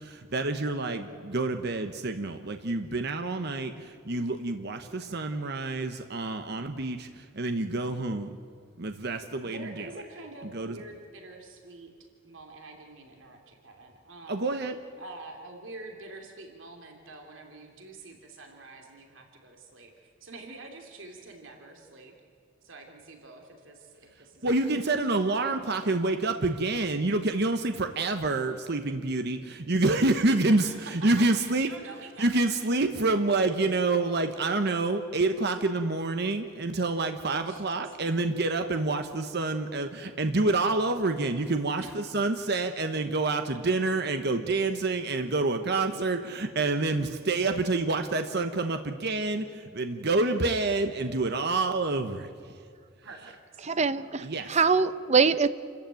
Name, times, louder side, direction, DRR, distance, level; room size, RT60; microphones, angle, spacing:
voice 1, 0.0-8.4 8.8-9.9 10.5-10.8 14.3-14.8 24.4-31.7 32.2-52.6 54.2-54.6, right 2 dB, 55° right, 7 dB, 1.1 m, -28 dB
voice 2, 9.4-11.9 12.2-14.5 15.0-22.1 22.6-25.7 30.5-32.6 37.5-37.6 41.7-41.9 53.0-53.6, right 2 dB, 75° right, 2 dB, 2.9 m, -46 dB
voice 3, 53.6-55.5, right 5 dB, 35° right, 13 dB, 0.8 m, -23 dB
28.5 x 14.0 x 9.2 m, 2.3 s
head